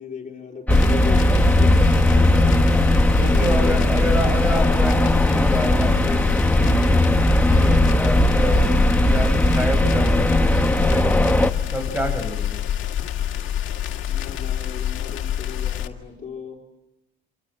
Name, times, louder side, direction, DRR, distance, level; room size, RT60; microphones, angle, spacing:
voice 1, 0.0-2.2 3.1-4.3 12.0-12.3 14.1-16.6, left 6 dB, 40° left, 0 dB, 4.3 m, -37 dB
sound 1, 0.7-15.9, left 11 dB, 75° left, 2.2 m, -27 dB
sound 2, 0.7-11.5, left 1 dB, 10° left, 1.4 m, -18 dB
voice 2, 1.9-2.7 3.2-7.0 7.5-8.7 9.0-11.2 11.7-12.5, left 1 dB, 10° right, 7 dB, 6.7 m, -28 dB
28.0 x 26.0 x 7.6 m, 0.96 s
cardioid pair, 90°, 20 cm